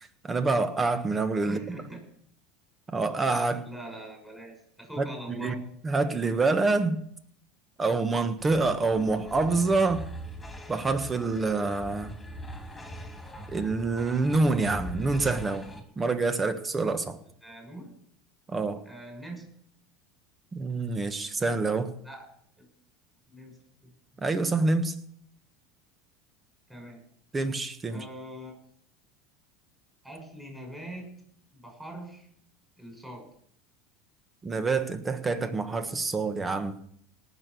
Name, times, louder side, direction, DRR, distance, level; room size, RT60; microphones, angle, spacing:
voice 1, 0.2-1.6 2.9-3.7 5.0-5.5 5.8-7.0 7.8-10.0 10.7-12.1 13.5-15.7 16.0-17.2 18.5-18.8 20.5-21.9 24.2-24.9 27.3-28.0 34.4-36.8, right 3 dB, 20° right, 9 dB, 1.6 m, -26 dB
voice 2, 1.4-2.0 3.6-5.6 17.4-17.9 18.8-19.5 22.0-22.3 22.6-22.7 23.3-24.2 26.7-27.0 27.9-28.6 30.0-31.1 31.5-32.3 32.8-33.3, right 1 dB, 5° right, 0 dB, 6.4 m, -43 dB
sound 1, 8.4-15.8, equal, 10° left, 3.0 m, -41 dB
18.5 x 6.4 x 7.0 m, 0.66 s
supercardioid pair, 100°, 0 cm